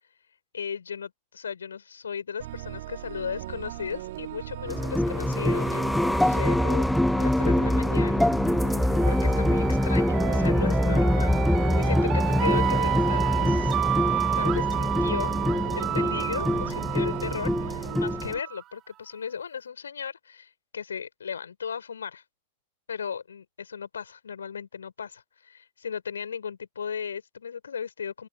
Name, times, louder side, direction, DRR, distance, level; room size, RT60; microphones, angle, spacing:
voice 1, 0.5-6.9 7.2-8.3 9.1-13.8 14.0-15.3 15.8-22.2 22.9-28.3, left 7 dB, 70° left, 5.2 m, -36 dB
sound 1, 2.4-18.4, right 16 dB, 55° right, 2.4 m, -39 dB
sound 2, 4.7-18.3, left 1 dB, 5° left, 0.3 m, -24 dB
andean riff, 8.9-18.6, right 14 dB, 35° right, 1.2 m, -31 dB
open air
figure-of-eight pair, 90°, 0 cm